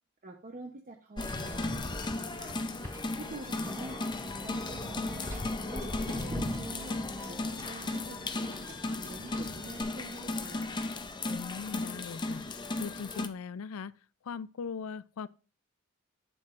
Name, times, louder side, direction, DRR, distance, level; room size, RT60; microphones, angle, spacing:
voice 1, 0.2-2.5 3.2-4.0 4.4-5.4 5.7-6.9 7.3-10.7, right 2 dB, 40° right, 0.8 m, -46 dB
sound 1, 1.2-13.3, left 2 dB, 20° left, 0.6 m, -36 dB
Wind / Boat Water vehicle, 1.2-9.8, equal, 15° right, 3.3 m, -45 dB
sound 2, 3.6-8.6, equal, ahead, 0.9 m, -46 dB
voice 2, 11.3-12.4 12.7-13.9 14.2-15.3, left 5 dB, 80° left, 0.4 m, -39 dB
11.5 x 7.8 x 2.5 m
head